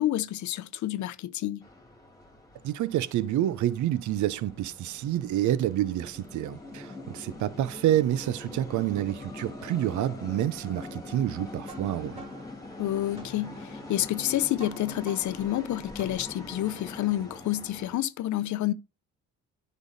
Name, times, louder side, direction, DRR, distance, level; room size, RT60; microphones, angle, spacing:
voice 1, 0.0-1.6 12.8-18.7, left 14 dB, 70° left, 0.6 m, -29 dB
sound 1, 1.6-18.0, left 2 dB, 10° left, 2.7 m, -43 dB
voice 2, 2.6-12.2, right 12 dB, 75° right, 0.7 m, -28 dB
sound 2, 11.7-16.7, right 2 dB, 20° right, 2.6 m, -49 dB
9.9 x 5.5 x 4.0 m
cardioid pair, 90°, 30 cm